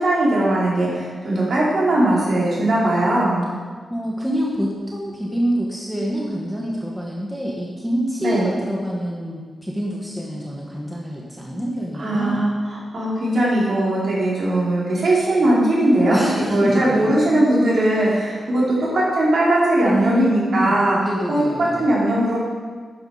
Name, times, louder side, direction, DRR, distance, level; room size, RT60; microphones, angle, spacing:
voice 1, 0.0-3.5 8.2-8.5 12.0-21.0 21.3-21.4 21.8-22.4, right 1 dB, 55° right, -6 dB, 4.5 m, -19 dB
voice 2, 3.9-12.5 16.1-17.1 19.8-21.9, equal, 5° right, -4 dB, 1.5 m, -26 dB
13.0 x 9.6 x 5.0 m, 1.5 s
wide cardioid pair, 165°, 0 cm